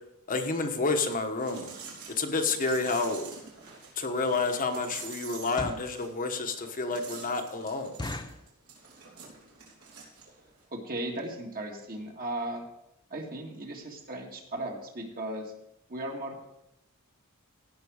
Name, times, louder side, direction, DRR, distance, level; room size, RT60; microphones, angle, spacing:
voice 1, 0.3-1.7 2.2-3.3 4.0-7.9, left 3 dB, 40° left, 5 dB, 1.2 m, -29 dB
sound 1, 1.0-10.7, right 5 dB, 75° right, 3.4 m, -47 dB
sound 2, 3.8-3.9 4.4-4.6 5.3-6.0 6.5-6.6 7.0-7.1 7.4-7.5 8.0-8.5 9.1-9.4 9.6-9.7 10.0-10.2 10.8-10.9 11.1-11.3 11.6-11.7 11.9-12.0, left 2 dB, 20° left, 0.6 m, -38 dB
voice 2, 10.7-12.6 13.1-15.5 15.9-16.5, right 1 dB, 45° right, 1 dB, 1.8 m, -36 dB
16.5 x 5.9 x 4.9 m, 0.82 s
head